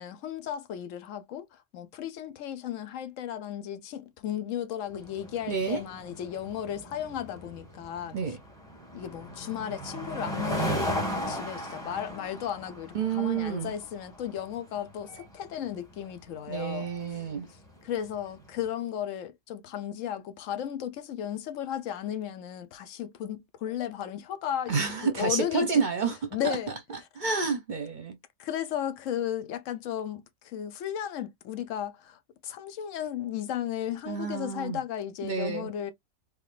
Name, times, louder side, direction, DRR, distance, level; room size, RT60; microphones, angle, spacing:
voice 1, 0.0-8.2 8.9-16.9 17.8-25.8 26.3-26.8 28.4-35.9, left 10 dB, 80° left, 1.0 m, -35 dB
sound 1, 4.9-18.5, equal, 5° left, 1.3 m, -37 dB
voice 2, 5.5-5.8 8.1-8.4 12.9-13.7 16.5-17.5 24.7-26.6 27.2-28.1 34.1-34.8 35.2-35.7, right 5 dB, 45° right, 0.7 m, -29 dB
3.6 x 3.4 x 2.3 m
omnidirectional pair, 1.3 m